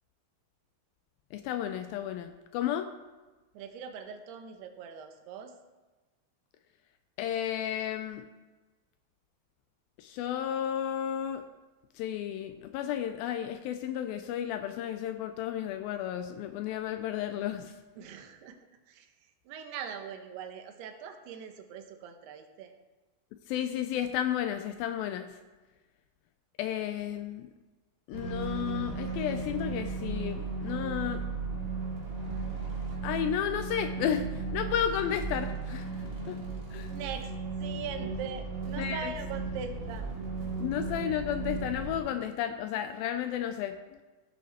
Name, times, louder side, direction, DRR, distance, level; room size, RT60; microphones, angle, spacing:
voice 1, 1.3-2.9 7.2-8.2 10.0-11.4 12.0-17.7 23.5-25.3 26.6-27.5 28.1-31.2 33.0-35.9 36.3-36.4 36.7-36.9 38.8-39.1 40.6-44.0, left 10 dB, 80° left, 8 dB, 2.2 m, -33 dB
voice 2, 3.5-5.5 18.0-18.6 18.9-22.7 36.9-37.3 37.6-40.1, right 7 dB, 85° right, 6 dB, 3.0 m, -41 dB
sound 1, 28.1-42.0, right 4 dB, 25° right, 1.8 m, -35 dB
16.5 x 6.5 x 4.2 m, 1.2 s
omnidirectional pair, 4.5 m